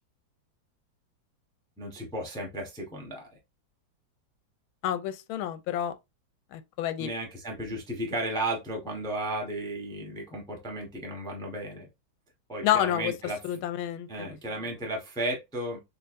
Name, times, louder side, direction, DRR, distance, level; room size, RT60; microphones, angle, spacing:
voice 1, 1.8-3.3 7.0-11.9 12.5-13.4 14.1-15.8, right 1 dB, 5° left, 0.8 m, -34 dB
voice 2, 4.8-6.0 6.5-7.1 12.6-13.1 13.4-14.4, left 11 dB, 90° left, 1.4 m, -29 dB
6.4 x 2.5 x 2.5 m
omnidirectional pair, 2.2 m